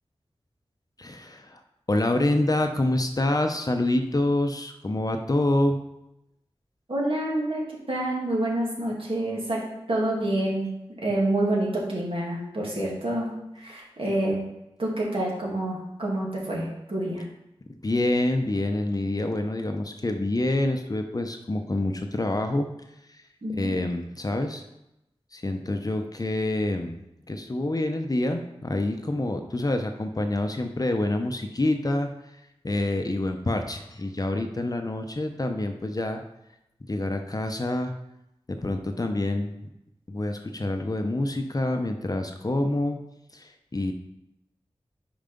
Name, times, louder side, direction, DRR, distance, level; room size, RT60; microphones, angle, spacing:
voice 1, 1.0-1.6 1.9-5.8 17.8-22.7 23.5-24.6 25.3-27.0 27.3-32.1 32.6-36.2 36.9-37.9 38.5-39.5 40.1-43.0 43.3-43.9, left 1 dB, 35° left, 5 dB, 0.7 m, -27 dB
voice 2, 6.9-7.6 7.9-9.6 9.9-10.6 11.0-13.3 13.6-14.4 14.8-17.2 23.4-23.8, right 1 dB, 60° right, -4 dB, 2.1 m, -27 dB
5.6 x 4.8 x 5.2 m, 0.88 s
wide cardioid pair, 65°, 10 cm